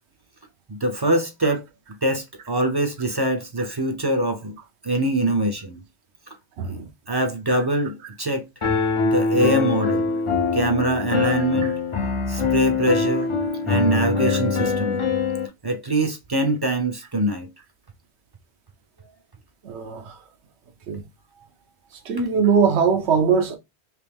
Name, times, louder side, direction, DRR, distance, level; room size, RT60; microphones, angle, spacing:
voice 1, 0.7-1.6 2.0-4.6 4.8-5.8 6.7-6.8 7.1-8.4 9.0-10.1 10.5-11.7 12.3-13.3 13.6-15.0 15.6-17.5, right 1 dB, 35° right, 0.4 m, -23 dB
Piano, 8.6-15.5, left 5 dB, 45° left, 0.4 m, -23 dB
voice 2, 19.6-20.1 20.9-21.0 22.1-23.6, right 6 dB, 90° right, 1.0 m, -21 dB
3.2 x 3.0 x 3.4 m
omnidirectional pair, 1.1 m